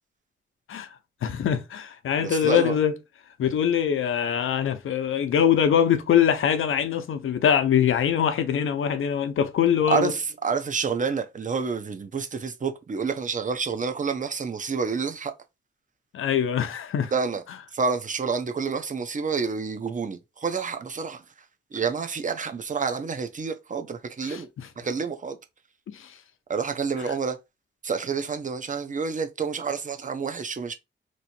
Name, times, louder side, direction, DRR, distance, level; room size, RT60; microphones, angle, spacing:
voice 1, 1.2-2.9 3.4-10.1 16.1-17.1 24.2-24.7 25.9-26.1, left 8 dB, 85° left, 0.7 m, -23 dB
voice 2, 2.2-2.8 9.9-15.3 17.1-17.4 17.7-21.2 21.7-24.5 24.8-25.4 26.5-27.4 27.8-30.7, right 5 dB, 40° right, 0.7 m, -28 dB
3.1 x 2.7 x 4.3 m
cardioid pair, 90°, 20 cm